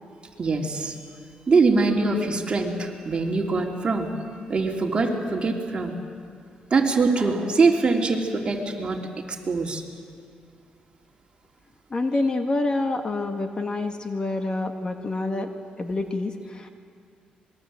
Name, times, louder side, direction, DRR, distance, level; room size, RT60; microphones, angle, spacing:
voice 1, 0.4-0.9 1.5-4.1 4.5-5.9 6.7-9.1 9.5-9.8, right 3 dB, 35° right, 0 dB, 3.4 m, -23 dB
voice 2, 11.9-15.5 15.8-16.7, left 2 dB, 30° left, 5 dB, 1.7 m, -27 dB
26.0 x 21.5 x 7.9 m, 2.2 s
cardioid pair, 100°, 3 cm